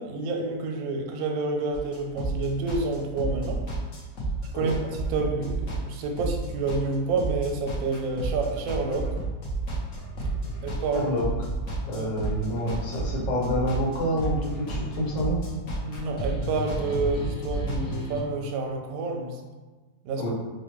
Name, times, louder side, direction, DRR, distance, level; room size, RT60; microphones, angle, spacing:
voice 1, 0.0-3.6 4.5-9.1 10.6-11.1 11.9-12.1 15.8-19.4 20.0-20.3, right 3 dB, 70° right, 2 dB, 0.9 m, -29 dB
sound 1, 1.7-18.2, right 2 dB, 55° left, 0.9 m, -31 dB
voice 2, 10.9-11.2 11.9-15.4 20.1-20.3, equal, 80° left, -4 dB, 1.5 m, -28 dB
4.2 x 2.1 x 3.0 m, 1.3 s
omnidirectional pair, 1.9 m